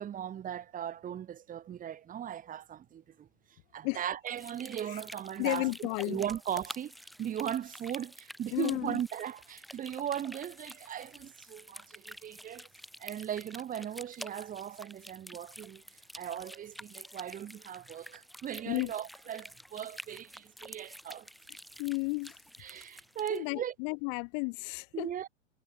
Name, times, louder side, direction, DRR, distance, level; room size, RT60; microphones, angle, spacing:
voice 1, 0.0-12.7 13.0-15.8 16.1-21.3 22.6-23.7 24.9-25.3, right 10 dB, 20° right, 2.7 m, -38 dB
Irregular Dropping Water, 4.3-23.4, equal, ahead, 7.3 m, -49 dB
voice 2, 5.4-6.2 8.5-9.0 18.7-18.9 21.8-22.3 23.3-25.1, left 40 dB or more, 40° left, 4.5 m, -33 dB
figure-of-eight pair, 105°, 37 cm